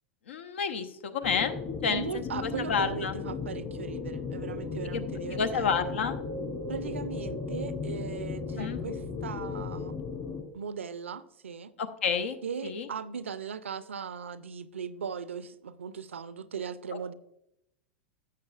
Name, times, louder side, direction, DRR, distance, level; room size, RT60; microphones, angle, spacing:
voice 1, 0.3-1.5 1.8-3.2 4.8-5.0 5.3-6.2 8.6-8.8 11.8-12.4 12.6-12.9, left 6 dB, 70° left, 0.8 m, -30 dB
sound 1, 1.2-10.4, left 4 dB, 40° left, 2.7 m, -36 dB
voice 2, 1.9-5.9 6.7-10.0 10.5-11.7 12.4-17.1, right 6 dB, 80° right, 0.4 m, -38 dB
12.5 x 7.8 x 2.4 m
figure-of-eight pair, 90°, 7 cm